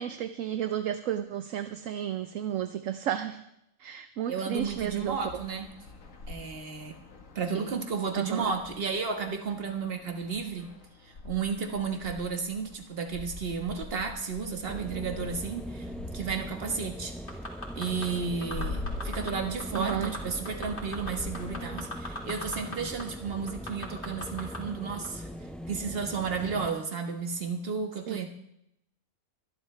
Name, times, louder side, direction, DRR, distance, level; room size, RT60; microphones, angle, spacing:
voice 1, 0.0-3.4 3.8-5.2 8.1-8.5 19.7-20.1 28.1-28.2, right 10 dB, 70° right, 9 dB, 1.0 m, -32 dB
voice 2, 4.3-5.7 6.3-7.0 7.3-10.7 11.0-15.9 16.1-17.1 17.8-25.3 25.7-28.3, right 5 dB, 45° right, 5 dB, 1.6 m, -33 dB
sound 1, 4.6-22.5, left 3 dB, 65° left, 1.8 m, -45 dB
sound 2, 14.7-26.7, equal, ahead, 0.4 m, -41 dB
sound 3, 17.3-18.0 18.4-19.3 19.6-20.2 20.4-22.7 23.0-23.1 23.5-24.6 25.0-25.1, left 2 dB, 35° left, 3.0 m, -37 dB
24.0 x 12.0 x 3.3 m, 0.79 s
omnidirectional pair, 1.5 m